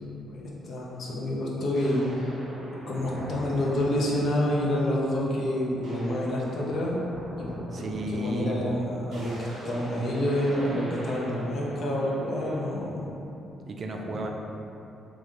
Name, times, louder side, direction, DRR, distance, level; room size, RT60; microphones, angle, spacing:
voice 1, 0.0-2.3 2.9-7.0 7.4-7.5 7.8-13.1 14.1-14.3, left 1 dB, 60° left, -4 dB, 0.6 m, -28 dB
sound 1, 0.9-1.0 1.7-4.6 5.1-5.4 5.6-12.8, equal, 70° right, 0.8 m, -41 dB
voice 2, 7.7-8.9 13.6-14.3, right 1 dB, 45° right, 2 dB, 0.3 m, -32 dB
2.9 x 2.4 x 3.7 m, 2.9 s
cardioid pair, 90°, 0 cm